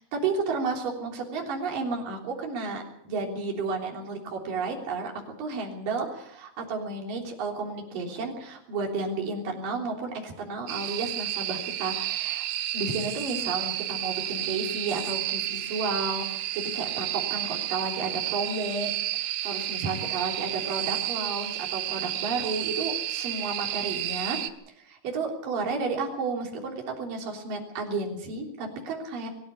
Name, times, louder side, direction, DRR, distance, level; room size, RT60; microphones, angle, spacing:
voice 1, 0.0-12.5 12.7-16.3 16.5-24.4 24.8-29.3, right 4 dB, 60° right, 0 dB, 5.0 m, -32 dB
sound 1, 10.7-24.5, right 13 dB, 80° right, 2.9 m, -31 dB
23.0 x 13.5 x 8.4 m, 0.71 s
omnidirectional pair, 4.4 m